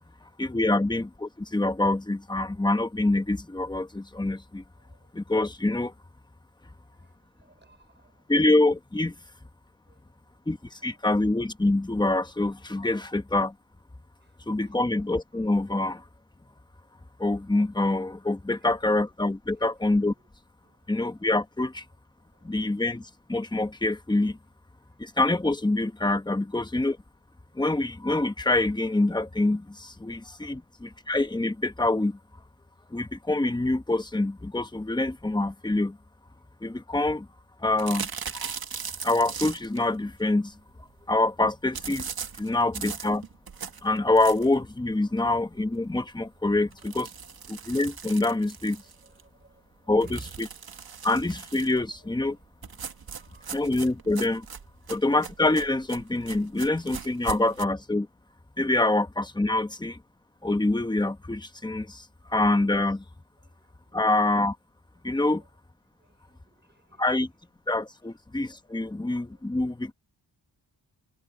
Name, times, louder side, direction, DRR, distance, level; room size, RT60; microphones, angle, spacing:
voice 1, 0.4-4.6 5.1-5.9 8.3-9.1 10.5-13.5 14.5-16.0 17.2-20.1 20.9-21.8 22.4-24.4 25.0-27.0 27.5-32.2 32.9-36.0 36.6-37.3 37.6-38.5 39.0-40.5 41.1-42.1 42.4-43.2 43.8-47.1 47.5-48.8 49.9-50.5 51.0-52.4 53.5-54.5 54.9-58.1 58.6-60.0 60.4-62.0 62.3-63.0 63.9-64.6 65.0-65.4 67.0-67.3 67.7-69.9, left 2 dB, 10° left, 1.0 m, -26 dB
voice 2, 4.8-5.1 6.9-8.3 9.7-10.3 10.7-10.9 14.2-14.4 18.6-19.0 19.6-19.7 20.6-20.8 22.2-22.6 24.9-25.0 30.5-30.6 30.9-31.0 43.7-43.9 47.1-47.7 49.0-50.3 50.9-51.1 52.0-52.3 53.1-53.6 54.8-54.9 57.2-57.3 63.4-64.0 66.0-67.0 68.7-69.0 69.3-69.4, right 3 dB, 25° right, 5.9 m, -54 dB
sound 1, 37.8-39.8 41.7-44.6 45.1-45.2 45.5-45.6 45.9-46.0 46.7-49.2 50.0-51.8 52.6-57.6, right 6 dB, 55° right, 1.8 m, -39 dB
wide cardioid pair, 155°, 43 cm